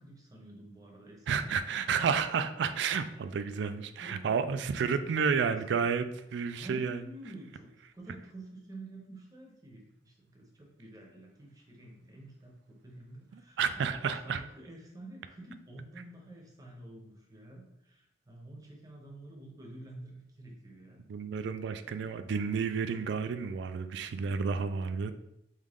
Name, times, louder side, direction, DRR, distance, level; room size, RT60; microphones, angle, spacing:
voice 1, 0.0-1.6 4.0-6.2 6.5-7.7 7.9-21.0, right 1 dB, 20° right, 0 dB, 0.8 m, -49 dB
voice 2, 1.3-6.0 6.3-7.0 13.6-14.4 21.1-25.1, right 6 dB, 70° right, 11 dB, 0.3 m, -31 dB
3.7 x 3.1 x 3.5 m, 0.82 s
head